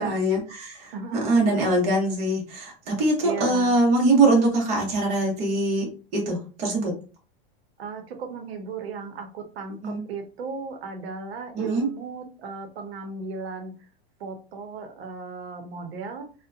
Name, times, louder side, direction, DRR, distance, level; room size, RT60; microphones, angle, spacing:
voice 1, 0.0-0.9 1.2-6.9 9.8-10.0 11.5-11.9, right 2 dB, 25° right, -2 dB, 0.8 m, -23 dB
voice 2, 0.9-1.8 3.2-3.7 7.8-13.7 14.2-16.3, right 4 dB, 85° right, 5 dB, 0.7 m, -36 dB
2.6 x 2.1 x 2.3 m, 0.36 s
supercardioid pair, 175°, 30 cm